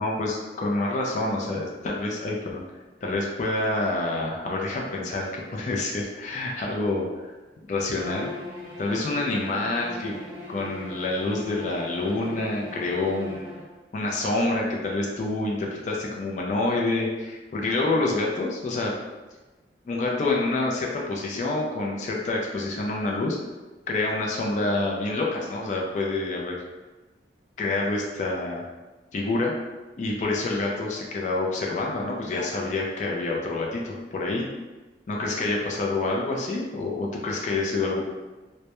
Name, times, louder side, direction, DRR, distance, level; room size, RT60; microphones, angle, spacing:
voice 1, 0.0-2.6 3.0-7.3 7.7-8.3 8.8-10.1 10.5-13.5 13.9-18.9 19.9-23.4 23.9-26.6 27.6-28.6 29.1-29.5 30.0-34.4 35.1-38.0, left 2 dB, 40° left, -2 dB, 0.3 m, -27 dB
Bowed string instrument, 7.9-13.7, left 2 dB, 35° right, 0.9 m, -39 dB
2.2 x 2.0 x 2.8 m, 1.2 s
head